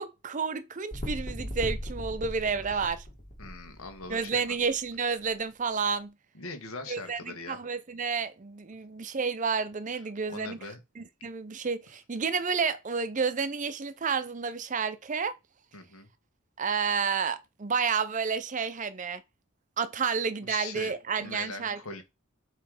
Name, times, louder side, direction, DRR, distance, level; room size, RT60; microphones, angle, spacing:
voice 1, 0.0-3.0 4.1-6.1 6.9-10.6 11.0-15.4 16.6-19.2 19.8-22.0, right 5 dB, 35° right, 0.5 m, -30 dB
sound 1, 0.9-4.7 5.2-5.3, equal, 35° left, 2.1 m, -38 dB
voice 2, 3.4-4.5 6.3-7.6 10.3-10.8 15.7-16.1 20.4-20.9 21.2-22.0, left 3 dB, 80° left, 1.6 m, -41 dB
7.8 x 3.2 x 4.9 m
head